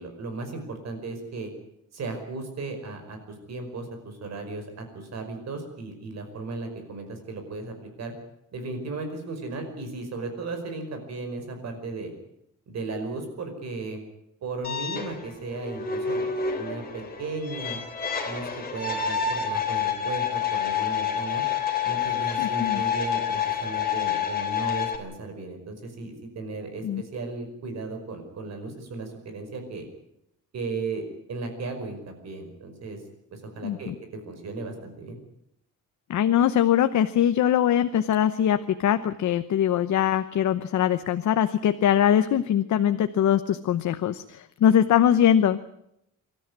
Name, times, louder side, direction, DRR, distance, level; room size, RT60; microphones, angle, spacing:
voice 1, 0.0-1.5 1.9-3.2 3.5-4.7 4.9-8.1 8.5-12.1 12.7-14.0 14.4-17.8 18.2-21.4 21.8-29.9 30.5-33.0 33.3-35.2, right 3 dB, 55° right, 6 dB, 5.3 m, -35 dB
sound 1, 14.6-25.0, left 7 dB, 30° left, 3.3 m, -28 dB
voice 2, 22.4-22.8 26.8-27.0 33.6-33.9 36.1-45.6, left 10 dB, 65° left, 10 dB, 1.0 m, -22 dB
26.0 x 13.5 x 9.6 m, 0.78 s
wide cardioid pair, 175°, 32 cm